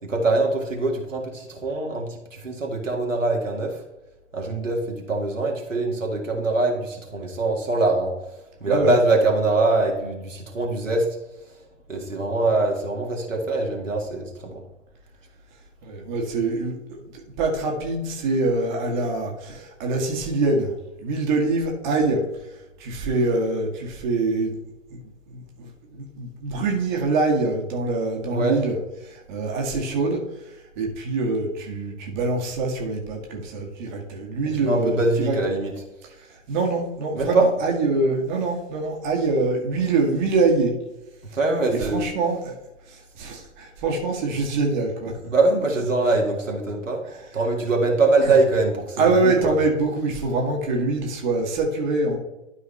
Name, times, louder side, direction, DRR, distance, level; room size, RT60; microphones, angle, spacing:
voice 1, 0.0-3.8 4.3-8.2 8.6-11.1 11.9-14.6 28.3-28.6 34.6-35.7 37.1-37.5 41.4-42.1 45.2-47.0 47.3-49.6, right 2 dB, 80° right, 0 dB, 2.0 m, -23 dB
voice 2, 8.7-9.0 15.8-16.7 17.0-20.7 21.0-22.2 22.8-24.6 24.9-25.0 25.3-28.8 29.0-35.4 36.3-40.7 41.7-42.5 42.9-45.1 48.2-48.4 49.0-52.2, right 3 dB, 40° right, 1 dB, 1.7 m, -24 dB
12.5 x 4.8 x 3.2 m, 1.0 s
figure-of-eight pair, 115°, 38 cm